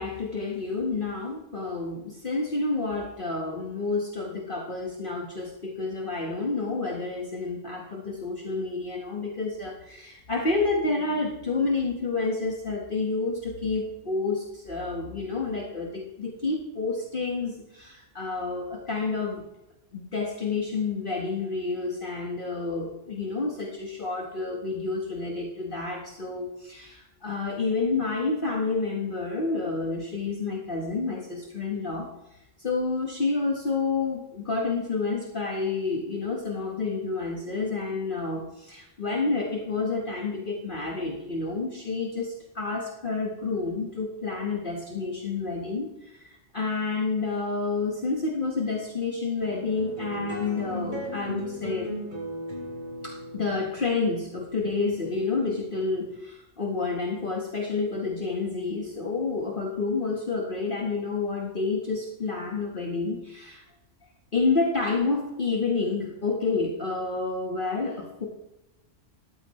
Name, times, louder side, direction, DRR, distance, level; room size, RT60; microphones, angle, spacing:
voice 1, 0.0-19.4 19.9-51.9 53.0-63.6 64.3-68.3, left 3 dB, 40° left, -1 dB, 1.7 m, -29 dB
sound 1, 49.4-56.1, equal, 40° right, 3.1 m, -37 dB
13.5 x 12.0 x 3.2 m, 0.94 s
omnidirectional pair, 1.3 m